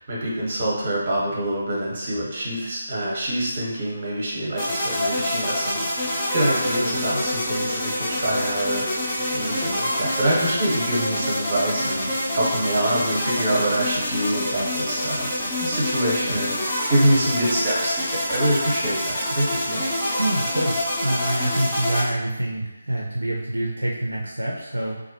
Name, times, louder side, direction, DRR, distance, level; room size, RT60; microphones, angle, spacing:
voice 1, 0.0-15.3 15.6-19.8, right 1 dB, 40° right, -4 dB, 0.8 m, -25 dB
sound 1, 4.6-22.0, left 1 dB, 15° left, 0.6 m, -26 dB
voice 2, 20.2-25.0, right 1 dB, 75° right, -3 dB, 0.4 m, -26 dB
2.4 x 2.0 x 2.7 m, 0.99 s
figure-of-eight pair, 150°, 0 cm